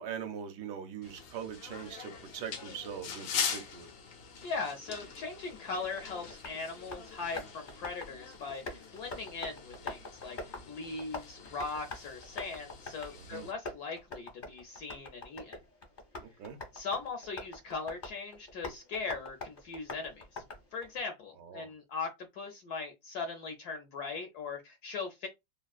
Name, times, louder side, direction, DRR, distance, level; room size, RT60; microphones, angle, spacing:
voice 1, 0.0-3.9 13.1-13.5 16.2-16.6 21.4-21.7, right 7 dB, 70° right, 1.1 m, -42 dB
sound 1, 1.0-13.5, left 6 dB, 90° left, 1.4 m, -43 dB
voice 2, 4.4-15.6 16.7-20.4 20.7-25.3, left 4 dB, 75° left, 0.9 m, -39 dB
Tap, 5.5-21.0, left 3 dB, 50° left, 0.5 m, -46 dB
3.4 x 2.1 x 2.3 m
omnidirectional pair, 2.1 m